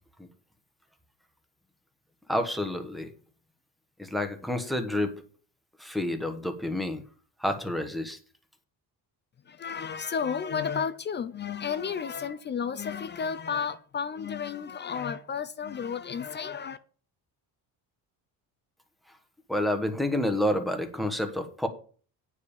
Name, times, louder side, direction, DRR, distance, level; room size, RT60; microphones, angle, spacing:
voice 1, 2.3-3.1 4.0-5.2 5.8-7.0 7.4-8.2 19.5-21.7, left 1 dB, ahead, 1.2 m, -29 dB
voice 2, 9.5-16.8, left 6 dB, 25° left, 0.5 m, -32 dB
9.3 x 5.0 x 7.1 m
cardioid pair, 160°, 40 cm